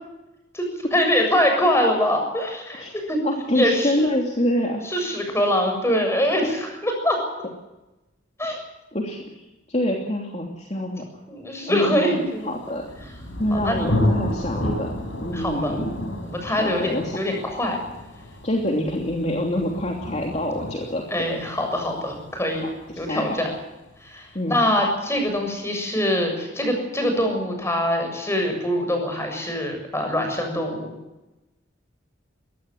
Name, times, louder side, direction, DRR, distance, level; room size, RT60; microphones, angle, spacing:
voice 1, 0.5-3.2 3.5-4.1 4.8-7.2 8.4-8.6 11.3-12.6 13.0-13.1 13.5-13.9 15.3-15.8 16.2-17.8 21.1-22.7 23.0-23.5 24.0-31.0, left 1 dB, 15° left, 4 dB, 7.2 m, -24 dB
voice 2, 3.2-4.9 8.4-8.6 8.9-9.2 9.7-11.0 11.7-12.2 12.4-12.9 13.4-16.1 16.4-17.2 18.4-21.0 22.6-22.7 23.1-23.4 24.3-24.6, left 1 dB, 35° left, 0 dB, 3.0 m, -26 dB
Thunder, 12.5-24.1, left 1 dB, 80° left, 5.3 m, -31 dB
22.5 x 18.0 x 8.0 m, 1.0 s
head